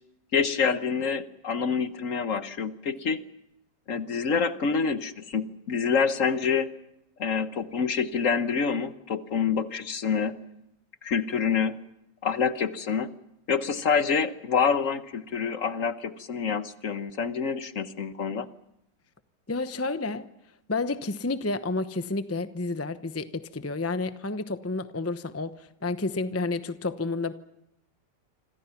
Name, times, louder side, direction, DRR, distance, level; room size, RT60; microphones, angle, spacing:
voice 1, 0.3-3.2 3.9-6.7 7.2-10.3 11.0-11.7 12.2-13.1 13.5-18.5, left 6 dB, 50° left, 1.3 m, -27 dB
voice 2, 19.5-20.3 20.7-27.3, left 3 dB, 15° left, 0.5 m, -30 dB
27.0 x 26.5 x 5.9 m
omnidirectional pair, 1.9 m